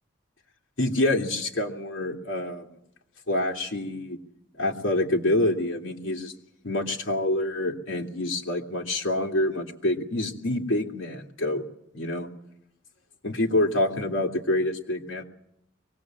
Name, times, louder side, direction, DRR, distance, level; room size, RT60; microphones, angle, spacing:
voice 1, 0.8-2.7 3.3-4.2 4.6-6.3 6.6-11.6 11.9-12.3 13.2-15.2, left 1 dB, 80° left, 0 dB, 2.6 m, -27 dB
24.0 x 18.5 x 7.5 m, 0.81 s
head